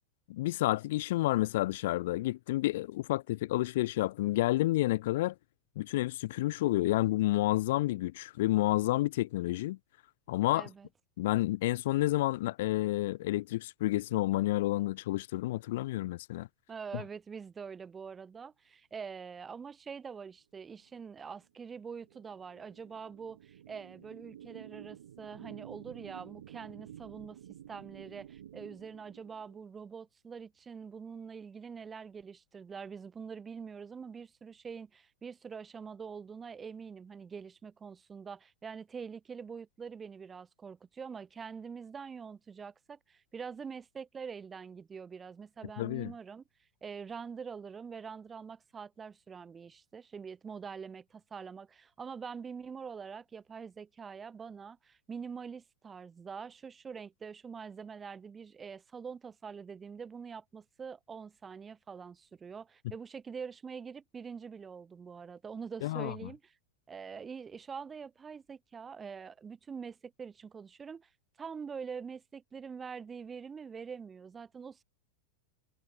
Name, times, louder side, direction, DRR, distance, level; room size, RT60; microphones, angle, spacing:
voice 1, 0.3-5.3 5.8-9.8 10.3-10.7 11.2-16.5 45.8-46.1 65.8-66.1, left 17 dB, 55° left, 0.7 m, -30 dB
voice 2, 10.5-10.9 16.7-27.4 27.7-46.4 46.8-66.5 66.9-71.1 71.4-74.8, right 6 dB, 20° right, 4.2 m, -44 dB
sound 1, 21.0-29.7, right 11 dB, 60° right, 3.0 m, -51 dB
figure-of-eight pair, 90°, 0 cm